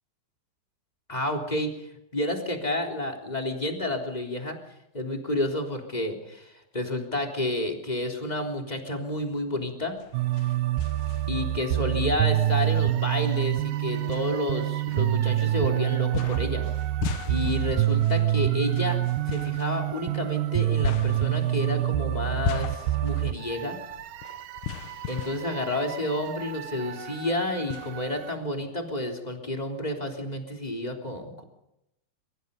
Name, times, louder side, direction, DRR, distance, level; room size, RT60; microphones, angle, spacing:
voice 1, 1.1-4.6 4.9-10.0 11.3-16.6 17.3-23.8 25.1-31.4, left 1 dB, 10° left, 2 dB, 3.0 m, -30 dB
sound 1, 9.9-11.6 12.1-12.2 13.2-13.3 14.1-15.6 16.1-26.5 26.8-26.9 27.7-28.8, left 10 dB, 90° left, 1.7 m, -38 dB
sound 2, 10.1-28.3, right 14 dB, 90° right, 1.9 m, -27 dB
24.0 x 24.0 x 5.4 m, 0.84 s
omnidirectional pair, 5.2 m